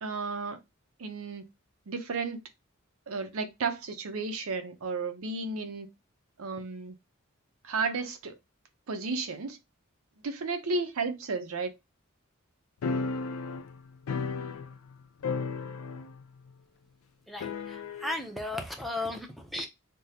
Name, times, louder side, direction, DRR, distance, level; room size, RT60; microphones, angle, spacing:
voice 1, 0.0-0.6 1.0-1.4 1.9-2.4 3.1-5.9 6.4-6.9 7.6-8.3 8.9-9.6 10.2-11.7, right 4 dB, 90° right, 0.6 m, -33 dB
sound 1, 12.8-14.9 15.2-16.2 16.5-16.6 17.4-18.2, left 4 dB, 80° left, 0.4 m, -34 dB
voice 2, 17.3-19.7, left 2 dB, ahead, 0.5 m, -35 dB
3.5 x 2.0 x 2.7 m
head